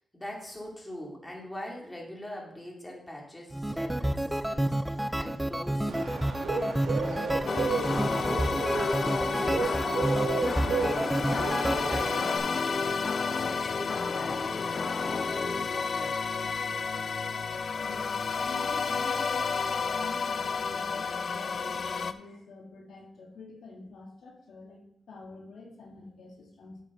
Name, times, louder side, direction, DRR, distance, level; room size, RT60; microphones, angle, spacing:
voice 1, 0.1-5.9 6.9-8.3 8.8-12.9 13.3-16.2, left 1 dB, 15° left, -2 dB, 2.7 m, -42 dB
sound 1, 3.5-12.1, right 1 dB, 10° right, 0.4 m, -30 dB
Bird, 5.9-12.4, right 4 dB, 85° right, 2.2 m, -33 dB
sound 2, 7.5-22.1, left 5 dB, 55° left, 0.5 m, -31 dB
voice 2, 17.8-26.8, left 3 dB, 80° left, 0 dB, 1.7 m, -47 dB
9.5 x 7.5 x 3.9 m, 0.75 s
cardioid pair, 95°, 0 cm